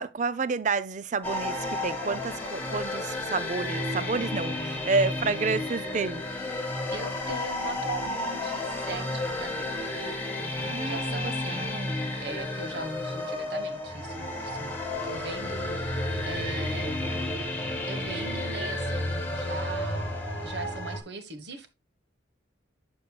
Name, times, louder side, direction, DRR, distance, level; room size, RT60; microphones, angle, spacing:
voice 1, 0.0-6.2 10.6-12.0, right 4 dB, 40° right, 0.4 m, -30 dB
sound 1, 1.2-21.0, left 1 dB, 10° left, 1.8 m, -32 dB
voice 2, 6.9-11.7 12.2-14.7 15.0-16.9 17.8-21.7, right 2 dB, 55° right, 1.3 m, -40 dB
12.0 x 5.4 x 2.2 m
head